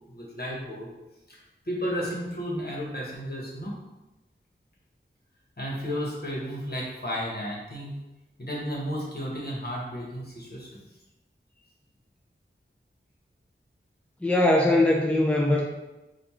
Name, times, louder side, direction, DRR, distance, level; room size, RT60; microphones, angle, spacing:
voice 1, 0.1-0.9 1.3-1.4 1.6-3.7 5.6-7.9 8.4-10.8, equal, 50° left, -3 dB, 1.4 m, -33 dB
voice 2, 14.2-15.6, left 1 dB, 5° left, -2 dB, 0.6 m, -21 dB
4.3 x 2.5 x 4.3 m, 1.0 s
wide cardioid pair, 50°, 21 cm